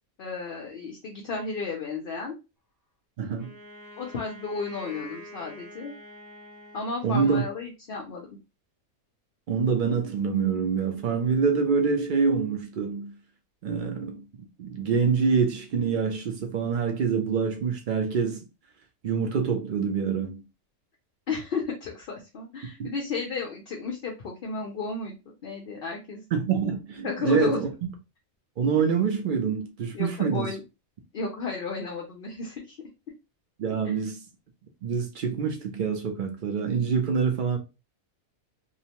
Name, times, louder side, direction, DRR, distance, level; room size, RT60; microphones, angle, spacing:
voice 1, 0.2-2.3 4.0-5.9 6.7-8.3 21.3-26.2 27.0-27.6 29.9-30.6 31.1-32.8 33.8-33.9, left 4 dB, 60° left, 0.6 m, -33 dB
voice 2, 3.2-3.5 7.0-7.4 9.5-13.1 13.6-14.2 14.6-18.4 19.0-20.4 22.8-22.9 26.3-27.9 28.6-30.5 33.6-34.3 34.8-37.6, right 5 dB, 80° right, 0.4 m, -26 dB
Wind instrument woodwind instrument, 3.4-7.6, equal, 15° left, 0.7 m, -46 dB
2.8 x 2.0 x 2.9 m
omnidirectional pair, 1.5 m